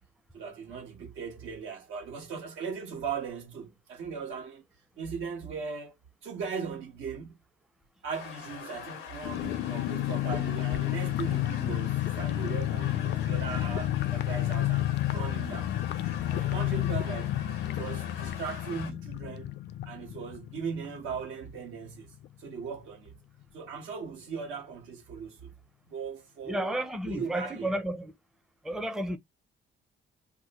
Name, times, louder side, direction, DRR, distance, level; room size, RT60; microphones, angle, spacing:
voice 1, 0.3-4.6 5.0-6.0 6.2-7.4 8.0-15.7 16.3-17.4 17.6-19.5 19.8-23.1 23.5-25.5 25.8-27.8, right 6 dB, 80° right, 1.2 m, -38 dB
sound 1, 8.1-18.9, left 7 dB, 90° left, 0.8 m, -43 dB
sound 2, 9.2-21.6 21.9-22.0 22.2-22.5, left 13 dB, 60° left, 0.4 m, -31 dB
voice 2, 26.5-28.1 28.6-29.2, right 1 dB, ahead, 0.5 m, -32 dB
2.8 x 2.1 x 4.0 m
cardioid pair, 90°, 20 cm